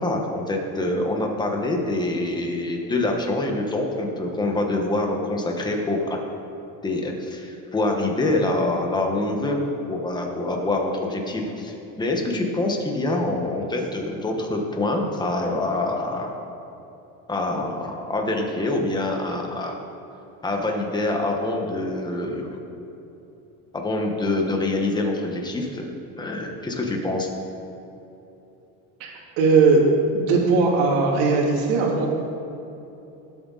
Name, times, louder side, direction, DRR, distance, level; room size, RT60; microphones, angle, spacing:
voice 1, 0.0-6.2 6.8-9.6 9.9-16.3 17.3-19.8 20.4-22.6 23.7-25.9 26.2-27.3, left 2 dB, 10° left, 1 dB, 1.5 m, -25 dB
voice 2, 29.0-29.8 30.1-32.1, right 4 dB, 85° right, -2 dB, 3.0 m, -19 dB
19.0 x 7.9 x 4.2 m, 3.0 s
cardioid pair, 150°, 36 cm